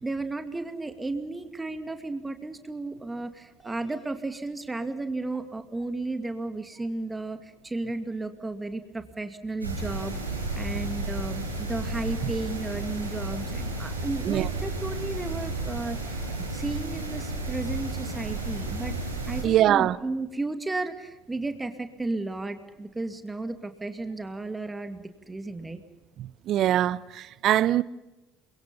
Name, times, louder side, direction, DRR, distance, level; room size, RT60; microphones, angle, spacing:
voice 1, 0.0-16.2 16.5-18.9 19.3-25.8, right 2 dB, 15° right, 2.3 m, -34 dB
sound 1, 9.6-19.4, right 2 dB, 90° right, 5.7 m, -32 dB
voice 2, 19.4-20.0 26.5-27.8, right 12 dB, 50° right, 0.8 m, -22 dB
30.0 x 23.5 x 5.6 m
figure-of-eight pair, 60°, 0 cm